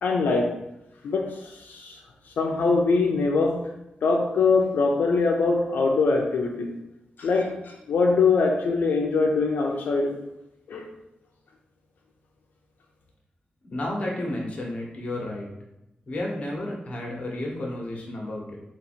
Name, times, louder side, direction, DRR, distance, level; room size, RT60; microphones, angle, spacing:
voice 1, 0.0-0.6 1.0-2.0 2.4-3.7 4.0-6.7 7.2-10.1 10.7-10.8, left 4 dB, 80° left, 0 dB, 0.5 m, -23 dB
voice 2, 13.6-15.5 16.1-18.6, left 1 dB, 40° left, -2 dB, 0.9 m, -32 dB
3.9 x 2.5 x 4.3 m, 0.89 s
wide cardioid pair, 170°, 3 cm